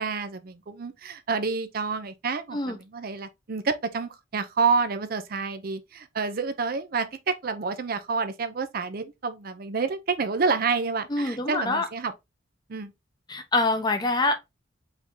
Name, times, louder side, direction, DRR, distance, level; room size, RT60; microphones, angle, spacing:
voice 1, 0.0-12.1 12.7-12.9, right 4 dB, 50° right, 0.6 m, -28 dB
voice 2, 11.1-11.9 13.3-14.3, left 2 dB, 20° left, 0.7 m, -25 dB
5.0 x 2.7 x 3.6 m
head